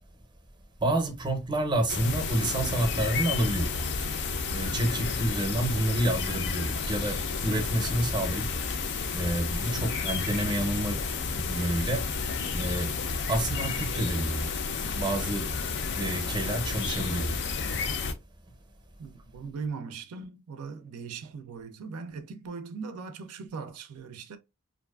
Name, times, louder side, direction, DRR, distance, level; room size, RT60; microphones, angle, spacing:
voice 1, 0.8-3.9 4.5-8.5 9.1-11.0 11.3-12.1 12.5-12.9 13.3-14.6 14.9-15.5 16.0-17.4, right 1 dB, 20° right, 0.6 m, -29 dB
sound 1, 1.9-18.1, left 4 dB, 55° left, 0.4 m, -31 dB
voice 2, 19.0-24.4, right 5 dB, 75° right, 0.4 m, -39 dB
2.5 x 2.3 x 2.2 m
head